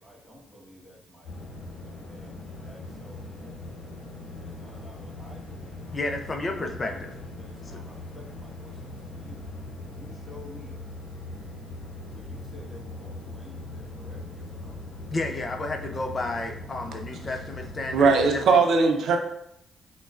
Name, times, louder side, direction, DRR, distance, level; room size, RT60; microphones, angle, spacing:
voice 1, 0.0-1.5 2.0-3.9 4.3-6.2 6.9-7.1 7.4-9.4 9.8-10.8 12.0-14.8 17.8-17.9 18.6-18.7, left 1 dB, ahead, 1.4 m, -50 dB
sound 1, 1.2-18.3, left 2 dB, 70° left, 0.8 m, -40 dB
voice 2, 5.9-7.1 7.7-7.8 15.1-18.4, left 2 dB, 40° left, 0.6 m, -32 dB
voice 3, 17.9-19.2, right 4 dB, 70° right, 0.6 m, -19 dB
5.7 x 2.3 x 2.5 m
supercardioid pair, 55°, 0 cm